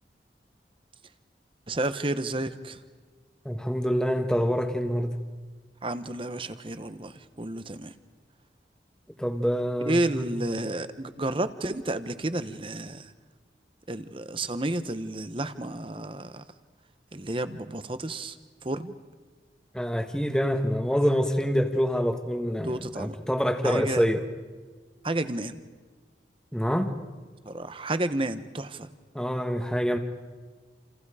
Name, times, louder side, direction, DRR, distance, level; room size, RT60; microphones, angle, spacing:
voice 1, 1.7-2.8 5.8-7.9 9.8-13.1 13.9-16.4 17.1-18.3 18.6-18.9 22.6-23.2 23.6-24.0 25.0-25.6 27.5-28.9, right 2 dB, 30° right, 12 dB, 1.0 m, -31 dB
voice 2, 3.4-5.1 9.2-10.3 19.7-24.2 26.5-26.9 29.1-30.0, equal, 5° left, 6 dB, 1.4 m, -26 dB
28.5 x 28.5 x 5.0 m, 1.4 s
head